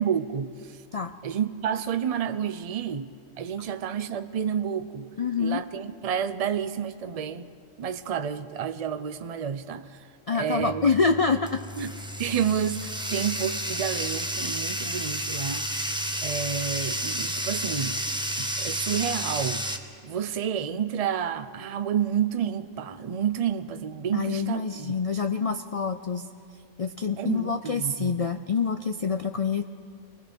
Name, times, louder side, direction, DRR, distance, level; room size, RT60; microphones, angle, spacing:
voice 1, 0.0-0.8 1.2-3.1 3.4-5.1 5.4-7.5 7.8-10.0 10.3-10.9 11.8-18.0 18.4-19.7 20.0-24.9 27.2-28.2, right 8 dB, 40° right, 10 dB, 0.5 m, -30 dB
voice 2, 5.2-5.6 10.3-11.6 24.1-26.3 26.8-29.6, left 5 dB, 60° left, 8 dB, 0.3 m, -26 dB
Bathtub (filling or washing), 10.6-19.8, equal, 5° right, 0.8 m, -31 dB
28.5 x 20.0 x 5.3 m, 2.4 s
omnidirectional pair, 1.4 m